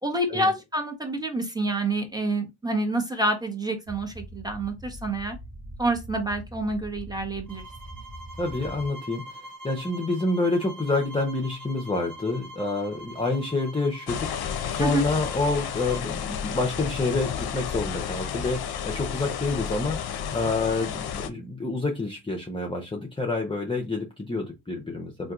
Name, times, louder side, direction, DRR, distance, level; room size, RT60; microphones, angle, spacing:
voice 1, 0.0-5.4 5.8-7.6 14.8-15.0, right 2 dB, 10° right, 1.0 m, -27 dB
sound 1, 3.9-8.9, equal, 75° right, 1.4 m, -42 dB
sound 2, 7.5-16.1, right 1 dB, 45° right, 1.3 m, -44 dB
voice 2, 8.4-9.2 9.6-25.3, left 3 dB, 10° left, 0.7 m, -28 dB
sound 3, 14.1-21.3, left 8 dB, 55° left, 0.6 m, -32 dB
3.5 x 2.8 x 2.4 m
supercardioid pair, 55°, 45 cm